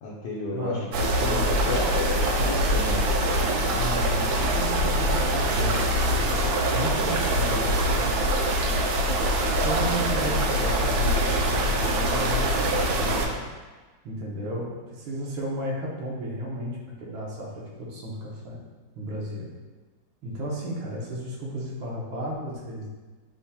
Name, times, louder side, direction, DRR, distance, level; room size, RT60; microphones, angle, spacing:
voice 1, 0.0-3.6, left 3 dB, 80° left, -5 dB, 1.4 m, -32 dB
voice 2, 0.5-0.9 1.2-1.5 3.7-8.1 9.5-13.4 14.0-18.6 19.0-19.5 20.2-22.9, equal, 85° right, -4 dB, 1.8 m, -34 dB
sound 1, 0.9-13.3, right 1 dB, 70° right, 0.9 m, -24 dB
8.1 x 2.8 x 2.2 m, 1.3 s
omnidirectional pair, 2.1 m